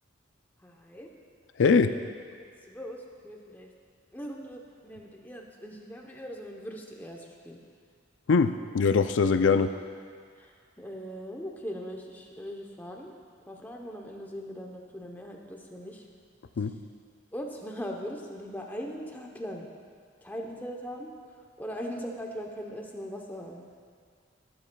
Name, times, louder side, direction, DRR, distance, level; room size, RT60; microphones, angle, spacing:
voice 1, 0.6-1.1 1.8-2.1 2.7-3.7 4.1-7.6 10.4-13.1 13.5-16.0 16.6-16.7 17.3-19.7 20.2-23.6, equal, 10° left, 0 dB, 0.8 m, -40 dB
voice 2, 1.6-1.9 8.3-9.8 16.6-16.8, left 5 dB, 80° left, 10 dB, 0.4 m, -22 dB
12.5 x 12.0 x 2.3 m, 2.1 s
head